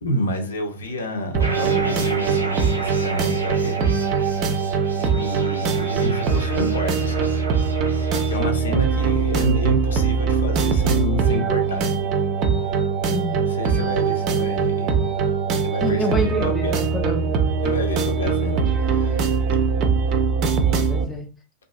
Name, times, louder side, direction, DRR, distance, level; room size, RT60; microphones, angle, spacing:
voice 1, 0.0-3.9 5.0-7.3 8.3-11.9 13.4-14.9 15.5-16.8 17.6-19.4 20.5-20.8, equal, 70° left, 3 dB, 0.6 m, -29 dB
sound 1, 1.3-21.0, right 5 dB, 40° right, 0.5 m, -22 dB
sound 2, 1.4-8.4, right 1 dB, 80° right, 0.6 m, -34 dB
voice 2, 13.1-13.5 15.8-17.4 20.9-21.3, equal, 15° left, 3 dB, 0.5 m, -27 dB
2.6 x 2.5 x 2.3 m, 0.34 s
figure-of-eight pair, 90°, 0 cm